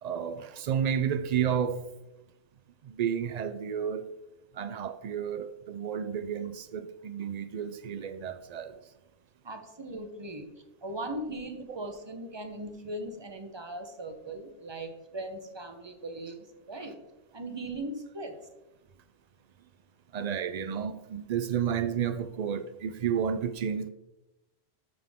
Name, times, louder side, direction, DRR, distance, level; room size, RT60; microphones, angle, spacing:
voice 1, 0.0-1.8 2.8-4.1 4.5-8.8 20.1-23.9, right 8 dB, 90° right, 0.3 m, -31 dB
voice 2, 9.4-10.5 10.8-17.0 17.3-18.4, right 1 dB, 25° right, 0.9 m, -39 dB
11.5 x 5.9 x 3.6 m
omnidirectional pair, 1.2 m